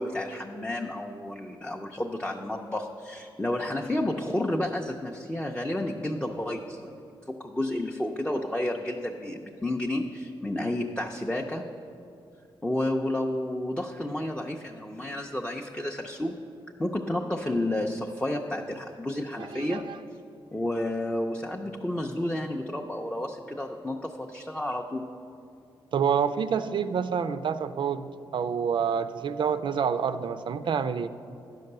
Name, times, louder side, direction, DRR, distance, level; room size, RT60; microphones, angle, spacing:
voice 1, 0.0-7.0 7.3-11.6 12.6-16.4 16.8-19.9 20.5-25.1, left 1 dB, 10° left, 0 dB, 0.5 m, -31 dB
voice 2, 19.4-20.0 25.9-28.1 28.3-31.1, right 7 dB, 60° right, 12 dB, 0.4 m, -27 dB
10.5 x 5.3 x 6.6 m, 2.5 s
cardioid pair, 100°, 9 cm